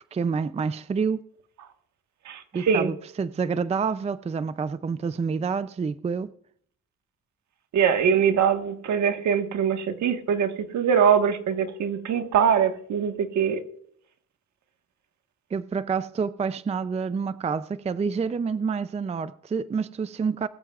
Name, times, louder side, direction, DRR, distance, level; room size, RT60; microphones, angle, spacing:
voice 1, 0.1-1.2 2.5-6.3 15.5-20.5, right 5 dB, 20° right, 0.4 m, -28 dB
voice 2, 2.2-2.9 7.7-13.6, right 7 dB, 70° right, 1.5 m, -23 dB
21.0 x 13.5 x 2.4 m
cardioid pair, 90°, 30 cm